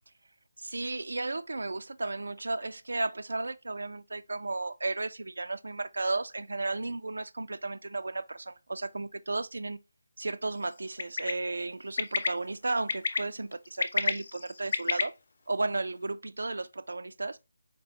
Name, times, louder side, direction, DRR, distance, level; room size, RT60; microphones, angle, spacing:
voice 1, 0.6-9.8 10.2-15.1 15.5-17.4, right 2 dB, 60° right, 0.3 m, -34 dB
Bird, 11.0-11.3 12.0-12.3 12.9-13.2 13.7-15.0, left 4 dB, 45° left, 0.4 m, -28 dB
4.5 x 3.0 x 2.7 m
figure-of-eight pair, 155°, 0 cm